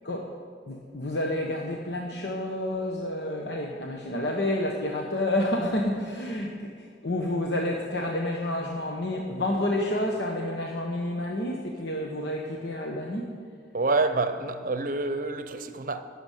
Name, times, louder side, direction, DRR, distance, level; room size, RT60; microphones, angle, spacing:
voice 1, 0.7-13.3, left 1 dB, 70° left, 1.0 m, -29 dB
voice 2, 13.7-16.0, right 3 dB, 50° right, 0.7 m, -27 dB
12.0 x 6.9 x 9.1 m
head